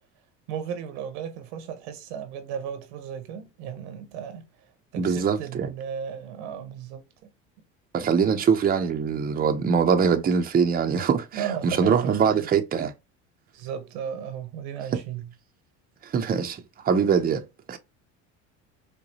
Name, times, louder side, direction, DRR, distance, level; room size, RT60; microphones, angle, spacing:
voice 1, 0.5-4.5 4.9-7.3 8.2-8.4 11.3-12.5 13.5-15.3, right 8 dB, 85° right, 1.0 m, -35 dB
voice 2, 5.0-5.7 7.9-12.9 16.0-17.8, right 6 dB, 25° right, 0.7 m, -23 dB
4.7 x 2.3 x 2.7 m
supercardioid pair, 100°, 33 cm